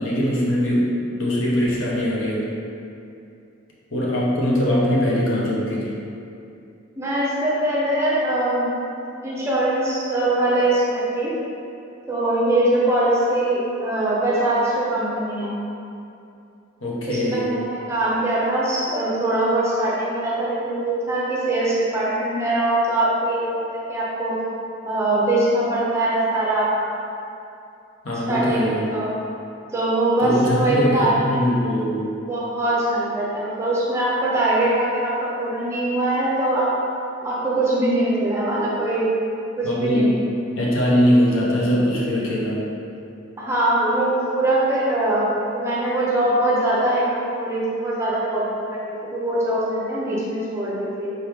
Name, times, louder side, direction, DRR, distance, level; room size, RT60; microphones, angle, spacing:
voice 1, 0.0-2.4 3.9-6.0 16.8-17.4 28.0-28.9 30.2-32.0 39.6-40.2 40.6-42.6, equal, 70° left, -5 dB, 0.9 m, -21 dB
voice 2, 7.0-8.7 9.2-11.3 12.1-15.6 17.1-24.3 24.8-26.7 28.3-29.1 29.7-31.2 32.3-36.7 37.2-39.1 39.6-40.2 43.4-45.3 45.5-47.0 47.3-51.1, right 1 dB, 15° right, -7 dB, 0.6 m, -22 dB
4.2 x 3.6 x 3.1 m, 2.6 s
head